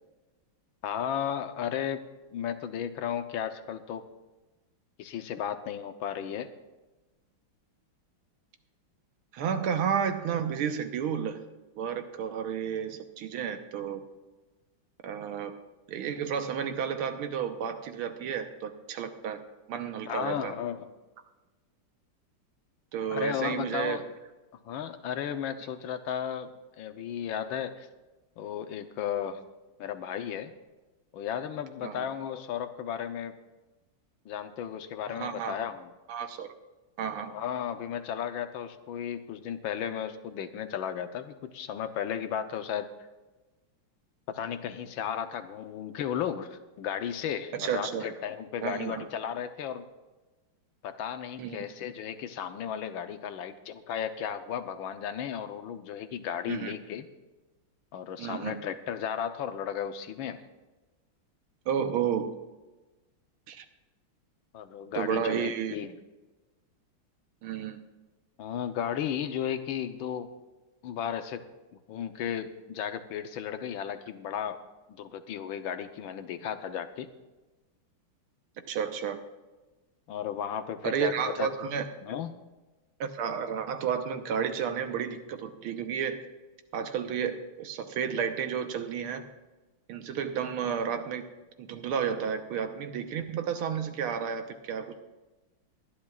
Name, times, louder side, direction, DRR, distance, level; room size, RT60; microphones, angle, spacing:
voice 1, 0.8-2.1 2.3-4.0 5.0-6.5 20.1-20.9 23.1-24.0 24.6-26.5 26.8-27.9 28.4-29.4 29.8-30.5 31.1-33.3 34.2-35.9 37.3-42.9 44.3-49.8 50.8-57.1 57.9-60.4 64.5-65.9 68.4-70.3 70.8-71.4 71.9-74.6 75.0-77.1 80.1-81.5 82.1-82.3, left 9 dB, 75° left, 9 dB, 1.5 m, -34 dB
voice 2, 9.3-11.5 11.8-14.0 15.0-15.5 15.9-19.4 19.7-20.5 22.9-24.0 31.8-32.1 35.1-35.6 36.1-36.5 37.0-37.3 47.5-48.1 48.6-49.1 51.4-51.7 56.5-56.7 58.2-58.6 61.7-62.4 63.5-63.7 64.9-65.8 67.4-67.8 78.7-79.2 80.8-81.9 83.0-86.2 86.7-89.3 89.9-91.3 91.6-95.1, right 7 dB, 90° right, 7 dB, 1.9 m, -32 dB
22.0 x 11.0 x 2.4 m, 1.2 s
omnidirectional pair, 2.3 m